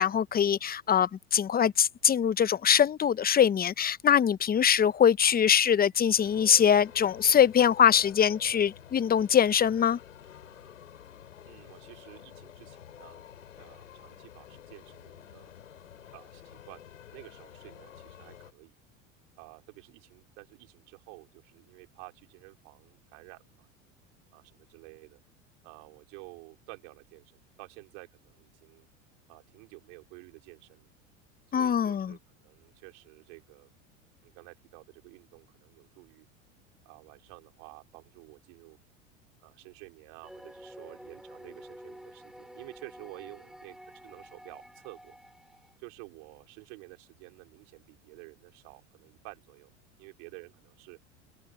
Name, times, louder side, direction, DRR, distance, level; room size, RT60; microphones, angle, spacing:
voice 1, 0.0-10.0 31.5-32.1, left 8 dB, 25° left, 0.9 m, -23 dB
sound 1, 6.1-18.5, left 10 dB, 90° left, 7.7 m, -50 dB
voice 2, 11.5-13.2 13.6-15.5 16.1-18.8 19.4-23.7 24.3-25.2 25.6-27.3 27.6-28.9 29.3-30.9 31.5-33.7 34.2-36.3 36.8-38.8 39.4-43.8 44.0-45.2 45.8-49.7 50.0-51.0, right 35 dB, 65° right, 4.4 m, -51 dB
sound 2, 40.2-45.7, equal, ahead, 7.1 m, -49 dB
hypercardioid pair, 85°, 38 cm